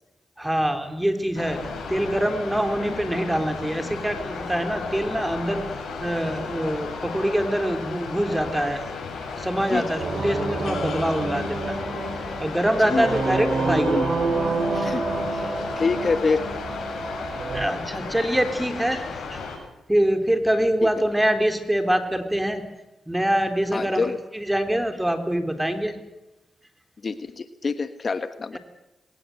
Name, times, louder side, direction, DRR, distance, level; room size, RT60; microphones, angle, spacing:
voice 1, 0.4-1.6 1.9-5.6 6.0-8.8 9.4-11.8 12.2-14.0 17.3-19.5 19.9-22.6 23.1-26.0, right 1 dB, 10° right, 7 dB, 3.8 m, -24 dB
sound 1, 1.3-19.6, left 4 dB, 70° left, 7.3 m, -34 dB
sound 2, 10.0-17.7, right 3 dB, 60° right, 3.5 m, -28 dB
voice 2, 12.8-13.2 13.7-14.1 14.7-16.5 23.7-24.2 27.0-28.6, left 4 dB, 45° left, 10 dB, 1.3 m, -27 dB
21.0 x 19.0 x 8.0 m, 0.97 s
supercardioid pair, 55°, 0 cm